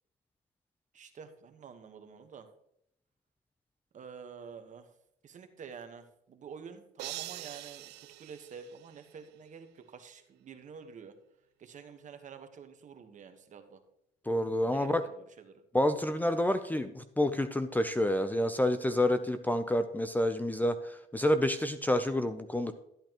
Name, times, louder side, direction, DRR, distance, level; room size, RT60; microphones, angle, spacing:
voice 1, 0.9-2.5 3.9-4.9 5.2-11.1 11.6-13.8 14.6-15.6, right 6 dB, 50° right, 7 dB, 1.3 m, -49 dB
sound 1, 7.0-9.3, right 16 dB, 90° right, 0.5 m, -44 dB
voice 2, 14.3-15.1 15.7-22.7, left 1 dB, 10° left, 10 dB, 0.5 m, -28 dB
12.5 x 8.7 x 3.0 m, 0.75 s
cardioid pair, 105°, 17 cm